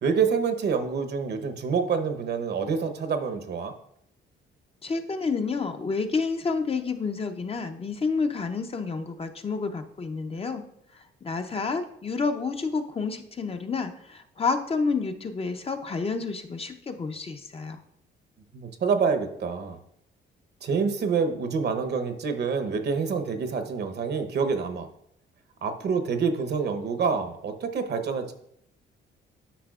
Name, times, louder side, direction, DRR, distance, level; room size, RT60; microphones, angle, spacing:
voice 1, 0.0-3.7 18.5-19.8 20.6-24.9 25.6-28.3, right 5 dB, 55° right, 7 dB, 0.9 m, -27 dB
voice 2, 4.8-10.6 10.9-17.8, left 4 dB, 30° left, 7 dB, 0.6 m, -29 dB
10.0 x 5.9 x 2.4 m, 0.73 s
cardioid pair, 90°, 20 cm